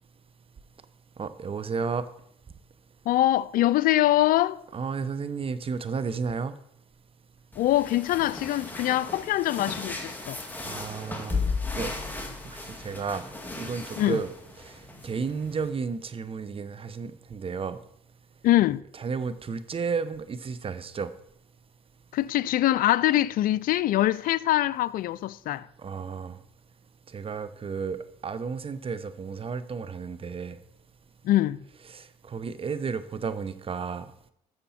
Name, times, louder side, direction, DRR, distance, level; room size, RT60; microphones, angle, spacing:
voice 1, 1.2-2.1 4.7-6.6 10.6-11.4 11.7-11.9 12.2-13.3 13.6-14.3 14.6-17.8 19.0-21.1 25.8-26.4 27.1-30.6 31.9-34.1, right 5 dB, 35° right, 0.9 m, -33 dB
voice 2, 3.1-4.6 7.6-10.4 14.0-14.2 18.4-18.8 22.1-25.6 31.2-31.6, left 14 dB, 65° left, 0.5 m, -23 dB
sound 1, 7.5-15.7, left 3 dB, 10° left, 2.2 m, -36 dB
13.0 x 7.0 x 4.3 m
supercardioid pair, 70°, 16 cm